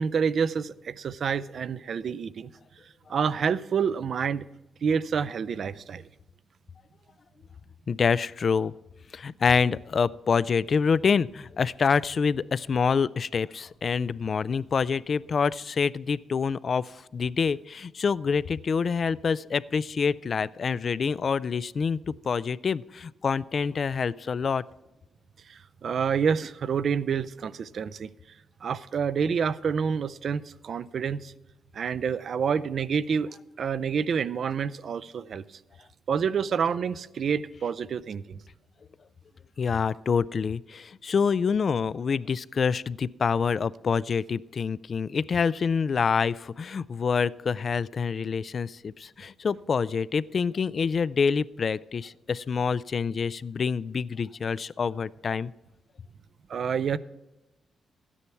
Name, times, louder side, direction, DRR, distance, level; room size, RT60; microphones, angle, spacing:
voice 1, 0.0-2.5 3.1-4.5 4.8-6.0 25.5-28.1 28.6-31.3 31.7-33.3 33.6-35.4 36.1-38.4 56.5-57.0, right 6 dB, 55° right, 17 dB, 0.4 m, -28 dB
voice 2, 7.9-8.7 9.1-24.6 39.6-55.5, left 5 dB, 45° left, 20 dB, 0.3 m, -26 dB
13.0 x 9.9 x 4.5 m, 1.0 s
cardioid pair, 120°, 0 cm